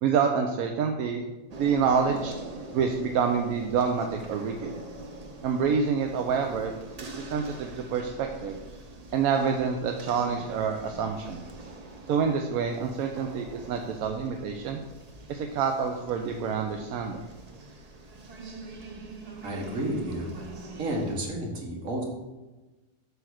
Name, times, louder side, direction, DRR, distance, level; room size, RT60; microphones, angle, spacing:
voice 1, 0.0-1.2 1.5-2.3 2.7-4.7 5.4-6.7 7.1-8.6 9.1-11.4 12.1-14.8 15.3-17.2, right 6 dB, 75° right, 3 dB, 1.0 m, -27 dB
sound 1, 1.5-21.3, right 2 dB, 40° right, 0.5 m, -44 dB
voice 2, 19.4-20.3 20.8-22.0, right 1 dB, 60° right, -1 dB, 1.8 m, -31 dB
7.8 x 3.4 x 6.2 m, 1.1 s
omnidirectional pair, 1.6 m